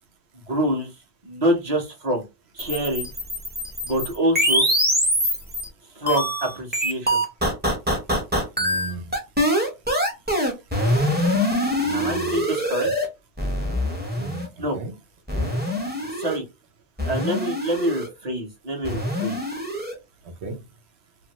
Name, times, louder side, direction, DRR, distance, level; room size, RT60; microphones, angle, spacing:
voice 1, 0.3-0.9 1.2-2.2 2.5-3.1 3.8-4.7 6.0-7.2 11.9-12.9 14.6-14.8 16.2-16.4 17.1-19.4, right 1 dB, 40° right, 0.9 m, -26 dB
sound 1, 2.6-5.7 6.1-13.0 13.4-14.5 15.3-16.4 17.0-18.1 18.8-19.9, equal, 10° right, 0.6 m, -24 dB
voice 2, 8.6-9.1 11.8-12.4 14.2-14.5 14.7-14.9 15.3-15.5 20.2-20.6, right 3 dB, 85° right, 1.0 m, -35 dB
2.5 x 2.5 x 2.9 m
omnidirectional pair, 1.1 m